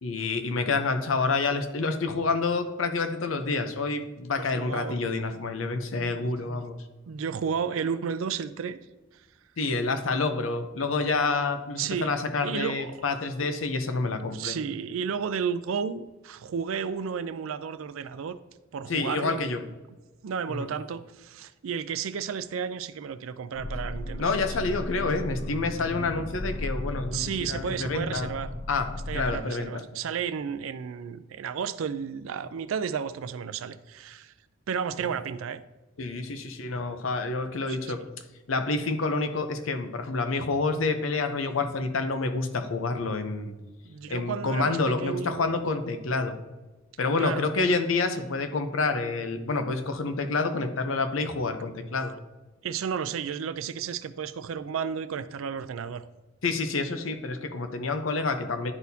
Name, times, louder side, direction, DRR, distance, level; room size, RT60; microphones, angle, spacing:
voice 1, 0.0-6.8 9.6-14.6 18.9-19.6 20.5-20.7 24.2-28.3 28.7-28.9 29.1-29.8 36.0-38.0 38.5-43.5 44.1-46.4 47.0-52.1 56.4-58.7, left 3 dB, 75° left, 7 dB, 0.7 m, -28 dB
voice 2, 4.5-5.1 5.9-6.6 7.1-8.8 11.8-12.1 12.4-13.0 13.4-13.5 14.3-18.4 18.7-19.5 20.2-24.4 27.1-28.5 29.1-34.3 34.7-35.6 37.7-38.0 43.8-45.7 47.2-47.5 52.6-56.0, right 7 dB, 85° right, 13 dB, 0.4 m, -32 dB
sound 1, 23.6-29.4, left 1 dB, 35° left, 0.4 m, -35 dB
11.0 x 4.1 x 2.7 m, 1.1 s
head